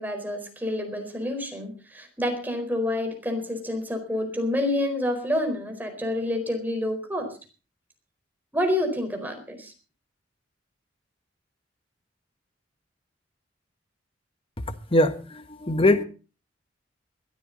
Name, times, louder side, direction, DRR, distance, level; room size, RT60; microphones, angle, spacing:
voice 1, 0.0-7.3 8.5-9.7, left 1 dB, 10° right, 4 dB, 4.4 m, -28 dB
voice 2, 14.9-16.0, left 1 dB, 30° left, 10 dB, 1.4 m, -21 dB
21.0 x 13.0 x 4.0 m, 0.35 s
head